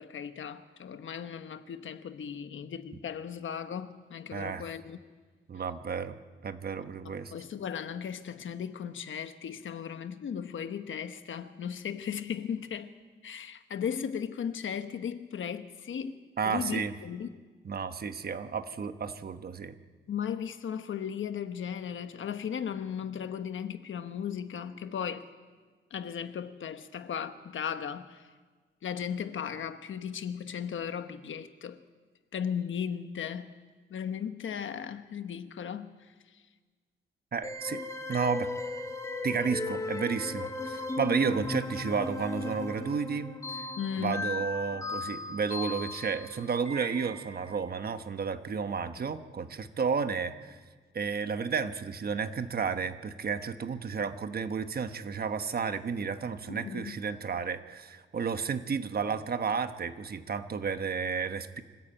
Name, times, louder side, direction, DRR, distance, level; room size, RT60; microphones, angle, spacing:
voice 1, 0.0-5.0 7.0-12.9 13.2-16.2 16.4-17.3 20.1-25.3 25.9-28.3 28.8-31.8 32.3-33.5 33.9-36.4 43.8-44.2 56.5-57.0, left 8 dB, 75° left, 1.1 m, -36 dB
voice 2, 4.3-4.6 5.5-7.3 16.4-16.9 17.6-19.8 37.3-37.8 38.1-38.5 39.2-43.7 44.0-50.6 50.9-61.6, right 5 dB, 50° right, 1.2 m, -32 dB
sound 1, 37.4-47.6, left 2 dB, 15° left, 1.9 m, -36 dB
25.0 x 14.0 x 8.8 m
wide cardioid pair, 135°, 20 cm